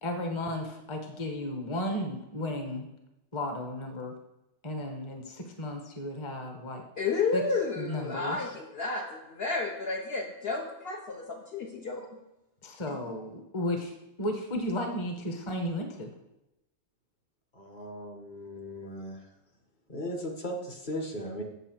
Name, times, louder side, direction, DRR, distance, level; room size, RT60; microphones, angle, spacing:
voice 1, 0.0-2.9 3.3-4.1 4.6-6.8 7.3-7.4 7.7-8.6 12.6-13.9 14.2-16.1, left 1 dB, 25° left, 4 dB, 1.0 m, -34 dB
voice 2, 7.0-12.1, left 4 dB, 60° left, 1 dB, 1.0 m, -31 dB
voice 3, 17.5-19.2 19.9-21.4, equal, 40° left, 1 dB, 1.4 m, -37 dB
8.0 x 7.3 x 4.5 m, 0.91 s
omnidirectional pair, 1.2 m